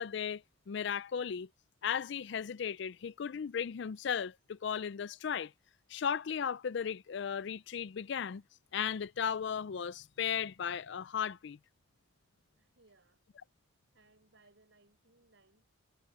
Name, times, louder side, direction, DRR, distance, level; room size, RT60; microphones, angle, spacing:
voice 1, 0.0-1.5 1.8-5.5 5.9-8.4 8.7-11.6, left 7 dB, 60° left, 0.4 m, -36 dB
voice 2, 12.5-13.2 13.9-15.7, right 2 dB, 70° right, 5.1 m, -66 dB
head